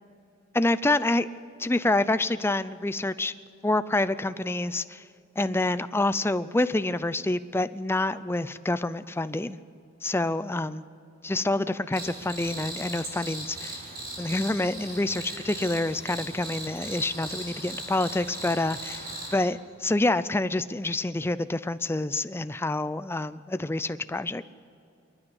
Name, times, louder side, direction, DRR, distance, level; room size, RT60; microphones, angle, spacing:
voice 1, 0.5-1.3 1.6-3.3 3.6-5.0 5.4-9.6 10.0-10.8 11.2-13.8 14.2-24.5, left 2 dB, 10° left, 13 dB, 0.5 m, -27 dB
Cricket, 11.9-19.4, right 1 dB, 50° right, 6.7 m, -38 dB
28.0 x 9.7 x 9.9 m, 2.5 s
head